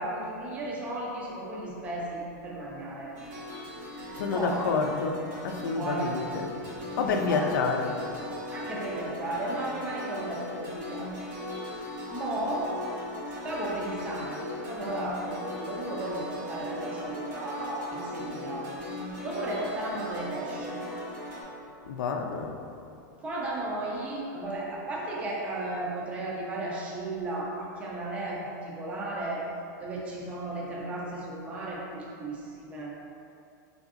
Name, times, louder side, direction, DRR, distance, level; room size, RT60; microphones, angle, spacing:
voice 1, 0.0-3.1 3.8-4.7 5.7-6.2 7.3-8.0 8.5-11.1 11.5-11.6 12.1-12.7 13.4-18.7 19.2-20.9 23.2-29.4 29.8-32.9, right 1 dB, 15° right, -4 dB, 0.4 m, -34 dB
sound 1, 3.2-21.4, left 1 dB, 90° right, 1.4 m, -38 dB
voice 2, 4.2-6.5 7.0-7.9 21.9-22.5, left 4 dB, 85° left, 4 dB, 0.4 m, -28 dB
3.9 x 3.5 x 2.4 m, 2.5 s
supercardioid pair, 165°, 10 cm